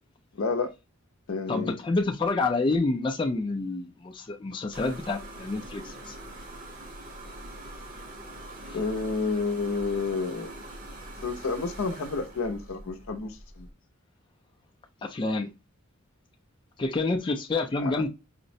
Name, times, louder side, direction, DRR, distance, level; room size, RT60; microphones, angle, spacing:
voice 1, 0.4-0.7 1.3-1.7 8.7-10.5 11.2-13.7 17.8-18.0, left 4 dB, 75° left, 0.6 m, -30 dB
voice 2, 1.5-6.2 8.7-8.8 15.0-15.5 16.8-18.1, left 3 dB, 25° left, 0.4 m, -28 dB
sound 1, 4.7-13.7, right 1 dB, 40° right, 0.8 m, -43 dB
5.0 x 2.0 x 2.6 m
head